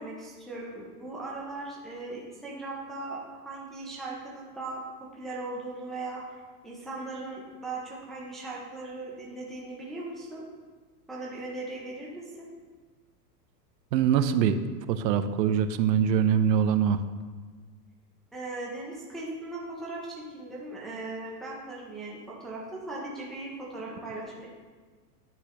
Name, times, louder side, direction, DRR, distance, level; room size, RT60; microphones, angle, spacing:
voice 1, 0.0-4.8 5.1-6.2 6.6-10.4 11.1-12.5 18.3-24.5, right 2 dB, ahead, -5 dB, 0.4 m, -38 dB
voice 2, 13.9-14.6 14.9-17.0, right 8 dB, 80° right, 11 dB, 0.6 m, -23 dB
10.0 x 4.1 x 2.9 m, 1.4 s
hypercardioid pair, 130°, 50 cm